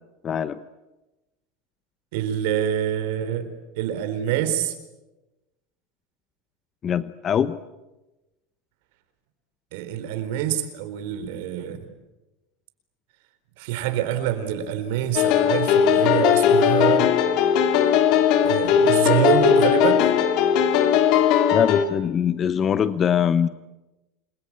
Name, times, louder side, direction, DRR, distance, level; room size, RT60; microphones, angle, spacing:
voice 1, 0.2-0.6 6.8-7.6 21.5-23.5, left 8 dB, 25° left, 13 dB, 0.9 m, -22 dB
voice 2, 2.1-4.7 9.7-11.9 13.6-17.1 18.3-20.1, right 10 dB, 70° right, 9 dB, 4.3 m, -26 dB
sound 1, 15.2-21.9, left 8 dB, 55° left, 3.1 m, -18 dB
28.5 x 23.0 x 8.8 m, 1.1 s
supercardioid pair, 145°, 0 cm